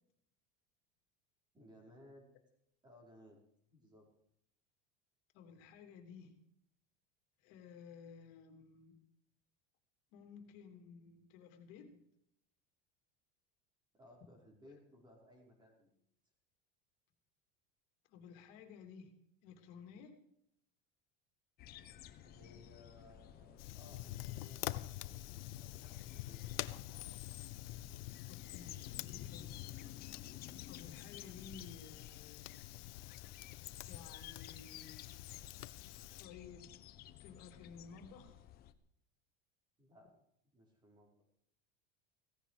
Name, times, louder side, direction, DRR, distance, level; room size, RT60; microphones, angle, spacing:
voice 1, 1.5-2.3 2.8-3.4 3.7-4.1 13.9-15.9 22.2-26.7 39.8-40.1 40.5-41.1, left 1 dB, 15° right, 0 dB, 5.4 m, -61 dB
voice 2, 5.3-6.4 7.4-9.0 10.1-12.0 18.1-19.1 19.4-20.2 28.3-28.9 29.2-29.6 30.7-32.5 33.8-35.2 36.2-36.8 37.2-38.4, left 6 dB, 55° left, 6 dB, 3.1 m, -55 dB
sound 1, 21.6-38.7, left 12 dB, 30° left, 1.0 m, -54 dB
Fire, 23.6-36.2, left 16 dB, 80° left, 0.9 m, -47 dB
17.0 x 16.5 x 5.1 m, 0.74 s
cardioid pair, 165°, 29 cm